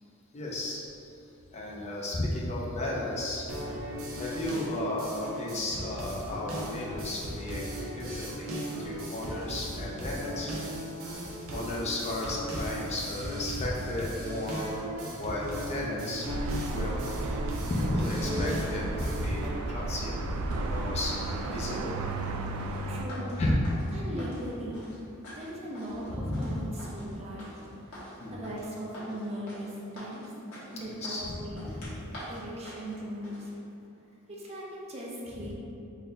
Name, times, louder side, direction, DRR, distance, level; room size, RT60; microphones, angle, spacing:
voice 1, 0.3-0.8 1.5-3.5 4.2-7.6 8.0-8.5 8.8-10.5 11.5-14.7 15.2-16.3 16.7-17.4 17.7-20.3 20.7-22.1 23.4-23.7 26.1-26.6 28.2-28.5 30.9-32.0, left 1 dB, 30° left, -3 dB, 0.5 m, -33 dB
sound 1, 3.5-19.5, equal, 70° right, 0.7 m, -37 dB
sound 2, 16.3-23.1, right 2 dB, 85° right, 0.3 m, -34 dB
sound 3, 20.3-33.5, equal, 80° left, 1.3 m, -47 dB
voice 2, 22.5-23.5 23.9-24.8 25.3-27.7 28.3-30.3 30.7-31.7 32.0-33.5 34.3-35.5, equal, 30° right, -4 dB, 0.6 m, -39 dB
4.0 x 2.2 x 3.8 m, 2.9 s
head